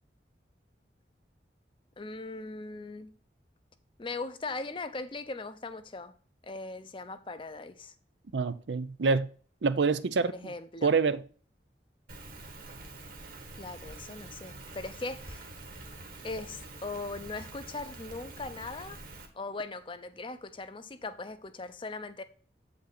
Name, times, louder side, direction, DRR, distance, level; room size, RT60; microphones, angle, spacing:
voice 1, 2.0-3.2 4.0-6.1 6.4-7.9 10.2-10.9 13.5-15.5 16.2-19.0 19.3-22.2, left 3 dB, 30° left, 0.6 m, -39 dB
voice 2, 8.3-9.3 9.6-10.5 10.8-11.2, right 4 dB, 80° right, 0.6 m, -26 dB
Rain, 12.1-19.3, right 2 dB, 50° right, 1.5 m, -46 dB
7.9 x 5.3 x 4.0 m
head